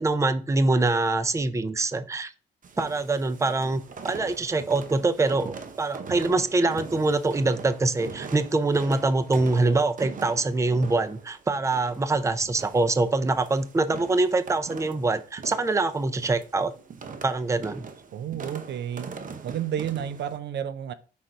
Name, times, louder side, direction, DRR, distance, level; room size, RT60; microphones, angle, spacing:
voice 1, 0.0-2.3 2.8-16.7 17.2-17.8, right 3 dB, 15° right, 0.6 m, -24 dB
sound 1, 2.6-20.4, right 5 dB, 40° right, 0.9 m, -42 dB
voice 2, 18.1-19.1 19.4-20.9, right 9 dB, 60° right, 0.5 m, -31 dB
5.6 x 3.8 x 4.5 m
cardioid pair, 90°, 20 cm